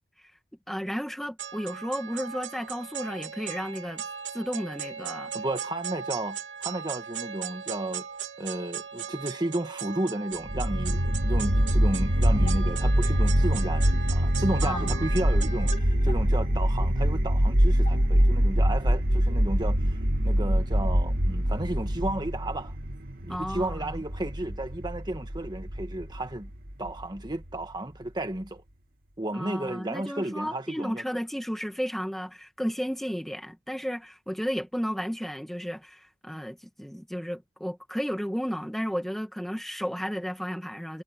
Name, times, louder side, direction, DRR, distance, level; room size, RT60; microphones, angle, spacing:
voice 1, 0.7-4.0 4.3-5.3 14.6-15.1 23.3-24.0 29.3-41.0, equal, ahead, 1.7 m, -33 dB
sound 1, 1.4-15.8, right 8 dB, 80° right, 3.5 m, -38 dB
voice 2, 5.3-8.1 8.4-20.0 20.2-22.7 23.2-26.5 26.8-28.6 29.2-31.0, right 1 dB, 25° right, 1.7 m, -33 dB
sound 2, 10.5-27.5, equal, 55° right, 2.6 m, -24 dB
sound 3, 12.4-18.6, left 3 dB, 40° left, 6.4 m, -46 dB
head